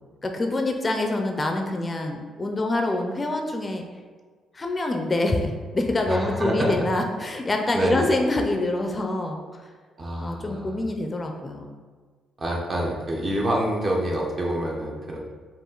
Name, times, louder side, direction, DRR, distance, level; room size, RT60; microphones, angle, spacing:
voice 1, 0.2-3.8 4.5-9.4 10.2-11.7, left 2 dB, 25° left, 3 dB, 0.5 m, -26 dB
voice 2, 6.1-6.8 7.7-8.1 10.0-10.8 12.4-15.2, right 1 dB, 40° right, -2 dB, 0.9 m, -26 dB
5.0 x 2.5 x 3.9 m, 1.5 s
cardioid pair, 90°, 0 cm